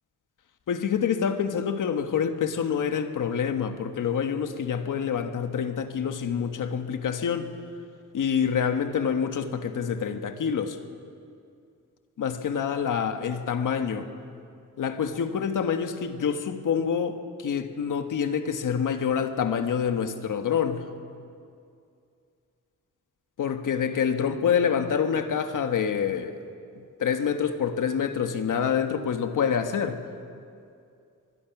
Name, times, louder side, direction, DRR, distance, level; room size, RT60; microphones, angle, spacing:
voice 1, 0.7-7.5 8.1-10.8 12.2-14.1 14.8-17.2 17.4-20.9 23.4-26.3 27.0-30.0, left 7 dB, 85° left, 7 dB, 1.4 m, -26 dB
23.5 x 21.0 x 6.0 m, 2.4 s
wide cardioid pair, 155°, 31 cm